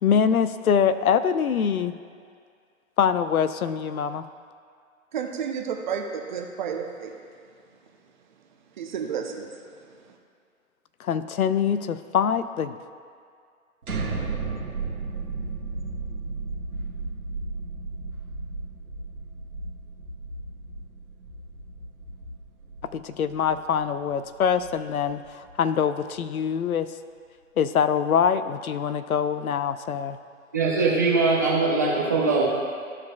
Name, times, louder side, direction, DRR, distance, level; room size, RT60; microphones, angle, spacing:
voice 1, 0.0-2.0 3.0-4.3 11.0-12.8 22.8-26.9 27.6-30.2, left 7 dB, 80° left, 12 dB, 0.6 m, -24 dB
voice 2, 5.1-7.2 8.8-10.0, right 7 dB, 35° right, 2 dB, 0.8 m, -32 dB
sound 1, 13.8-25.7, right 3 dB, 85° right, 1.5 m, -35 dB
voice 3, 30.5-32.4, right 3 dB, 15° right, -5 dB, 0.4 m, -21 dB
14.0 x 4.9 x 2.3 m, 2.2 s
hypercardioid pair, 140°, 42 cm